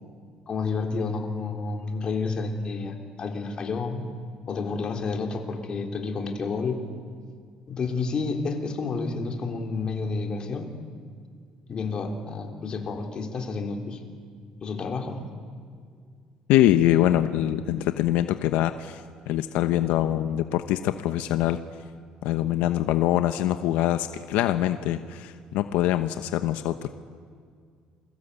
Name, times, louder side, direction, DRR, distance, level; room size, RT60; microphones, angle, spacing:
voice 1, 0.5-4.1 4.5-6.8 7.7-10.7 11.7-14.0 14.6-15.3, left 4 dB, 35° left, 3 dB, 3.5 m, -30 dB
voice 2, 16.5-19.0 19.3-21.6 22.2-26.9, left 13 dB, 85° left, 9 dB, 1.0 m, -24 dB
29.0 x 22.0 x 8.3 m, 2.1 s
cardioid pair, 150°, 3 cm